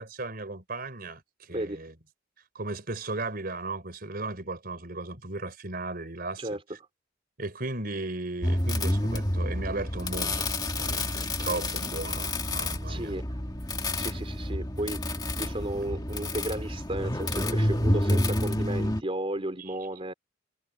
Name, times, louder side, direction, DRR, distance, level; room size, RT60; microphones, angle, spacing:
voice 1, 0.0-1.9 2.5-6.6 7.4-13.2 19.6-19.7, right 2 dB, 50° right, 4.3 m, -36 dB
sound 1, 8.4-19.0, left 1 dB, 20° left, 1.9 m, -29 dB
voice 2, 12.9-13.3 14.0-20.1, right 1 dB, 30° right, 3.4 m, -34 dB
head